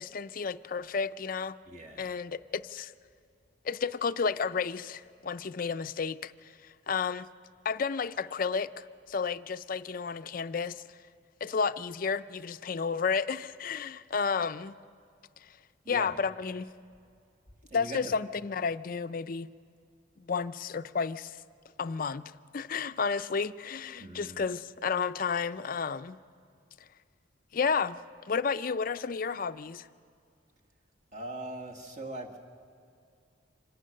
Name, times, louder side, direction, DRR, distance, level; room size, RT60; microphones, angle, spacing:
voice 1, 0.0-1.6 2.0-2.9 3.6-6.3 6.9-7.3 7.6-10.8 11.4-14.8 15.9-16.7 17.7-19.5 20.3-21.4 21.8-26.2 27.5-28.0 28.3-29.9, left 5 dB, 45° left, 0.4 m, -32 dB
voice 2, 1.7-2.2 15.8-16.1 17.7-18.1 24.0-24.4 31.1-32.4, right 2 dB, 35° right, 1.8 m, -41 dB
25.5 x 18.0 x 6.5 m
head